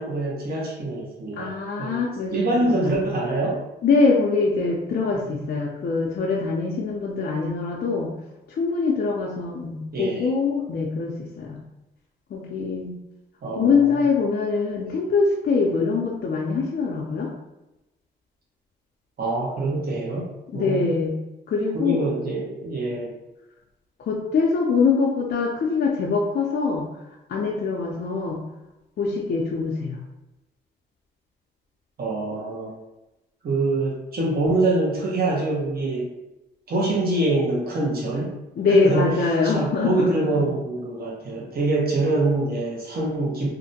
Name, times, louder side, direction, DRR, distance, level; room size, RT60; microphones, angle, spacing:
voice 1, 0.0-2.0 2.3-3.6 5.1-5.5 9.9-10.3 13.4-13.9 19.2-20.9 21.7-23.2 32.0-32.7 33.4-36.1 36.7-38.4 38.7-39.1 39.4-43.5, right 2 dB, 50° right, -4 dB, 0.8 m, -25 dB
voice 2, 1.4-3.0 3.8-8.1 8.5-11.6 12.3-12.9 13.6-17.3 20.5-21.1 21.5-22.1 24.0-26.9 27.3-28.4 29.0-30.0 38.6-40.5, left 4 dB, 55° left, -2 dB, 0.4 m, -23 dB
2.5 x 2.1 x 2.7 m, 0.97 s
cardioid pair, 75°, 20 cm